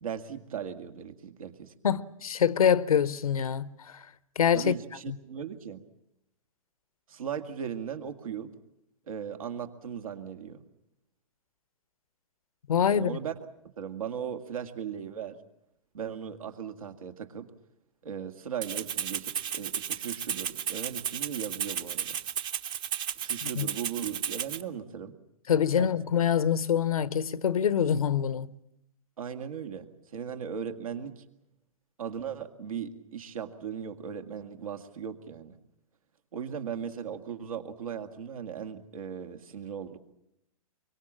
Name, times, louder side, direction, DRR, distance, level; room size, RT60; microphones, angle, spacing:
voice 1, 0.0-1.7 4.5-5.8 7.1-8.5 9.1-10.6 12.9-13.3 13.8-15.4 15.9-17.5 18.0-22.2 23.2-25.2 25.8-25.9 29.2-29.9 30.1-31.2 32.0-35.5 36.3-40.0, right 8 dB, 75° right, 2.2 m, -37 dB
voice 2, 1.8-4.1 4.4-4.7 5.1-5.2 12.7-13.2 23.4-23.7 25.5-28.5, left 8 dB, 80° left, 0.9 m, -25 dB
Rattle (instrument), 18.6-24.6, right 9 dB, 25° right, 0.9 m, -33 dB
24.0 x 23.5 x 7.5 m
hypercardioid pair, 125°, 18 cm